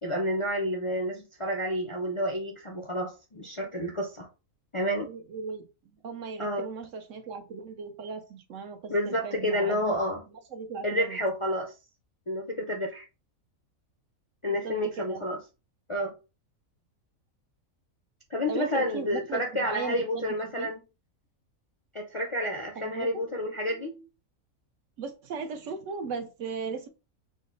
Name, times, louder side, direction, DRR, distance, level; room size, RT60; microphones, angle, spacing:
voice 1, 0.0-4.3 4.7-5.1 6.4-6.7 8.9-10.2 10.8-11.7 12.3-13.0 14.4-15.4 15.9-16.1 18.3-20.8 21.9-24.1, equal, 35° left, 0.5 m, -30 dB
voice 2, 5.0-5.7 6.0-10.0 10.5-11.2 14.5-15.2 18.5-20.7 22.8-23.2 25.0-26.9, right 5 dB, 65° right, 1.0 m, -37 dB
5.0 x 2.1 x 3.8 m
omnidirectional pair, 1.4 m